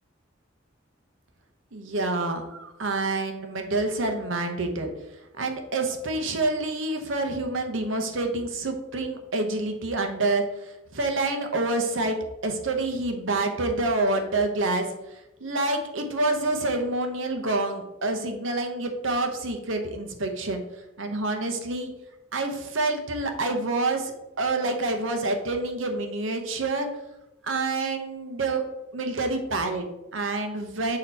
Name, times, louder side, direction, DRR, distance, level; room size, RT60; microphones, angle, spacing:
voice 1, 1.7-4.9 5.4-20.6 21.0-21.9 22.3-26.9 27.4-28.6 28.9-31.0, right 2 dB, 75° right, 5 dB, 0.9 m, -27 dB
6.5 x 2.9 x 5.4 m, 0.94 s
head